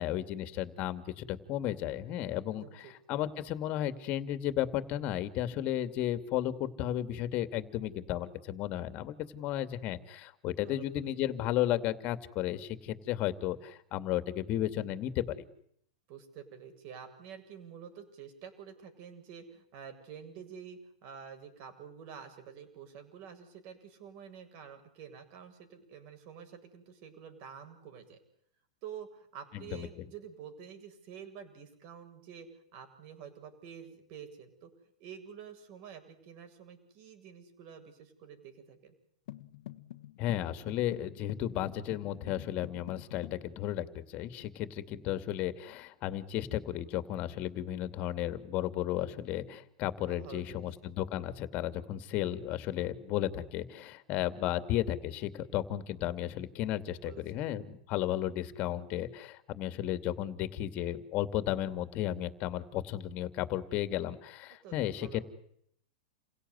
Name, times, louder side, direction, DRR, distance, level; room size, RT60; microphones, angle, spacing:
voice 1, 0.0-15.4 29.5-29.9 40.2-65.2, left 12 dB, 40° left, 12 dB, 2.6 m, -34 dB
voice 2, 2.5-2.9 10.6-11.3 16.1-28.2 28.8-34.7 35.0-38.9 50.1-50.7 56.9-57.5 64.6-65.2, right 8 dB, 50° right, 8 dB, 7.7 m, -49 dB
sound 1, 39.3-43.5, left 15 dB, 65° left, 1.4 m, -47 dB
29.5 x 17.5 x 9.7 m, 0.69 s
hypercardioid pair, 120°, 4 cm